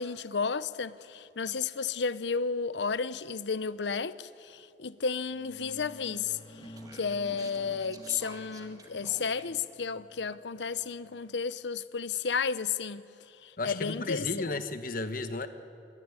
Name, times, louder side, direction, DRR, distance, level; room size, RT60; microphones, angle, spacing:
voice 1, 0.0-14.5, left 5 dB, 85° left, 0.7 m, -33 dB
sound 1, 5.1-11.7, left 1 dB, 25° left, 1.4 m, -52 dB
Speech, 6.2-9.7, right 2 dB, 20° right, 2.2 m, -51 dB
voice 2, 13.6-15.5, left 3 dB, 50° left, 1.3 m, -33 dB
24.0 x 23.5 x 9.7 m
head